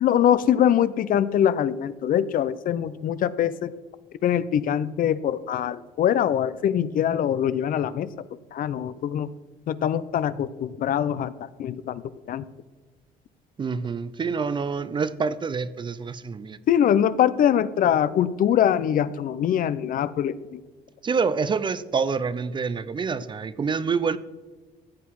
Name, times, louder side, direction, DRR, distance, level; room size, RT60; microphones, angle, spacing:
voice 1, 0.0-3.7 4.2-8.1 8.5-9.3 9.7-11.3 11.6-12.0 12.3-12.4 16.7-20.6, left 10 dB, 55° left, 16 dB, 0.6 m, -23 dB
voice 2, 13.6-16.6 21.0-24.2, right 5 dB, 30° right, 16 dB, 0.5 m, -27 dB
14.5 x 8.3 x 4.7 m, 1.3 s
cardioid pair, 110°, 17 cm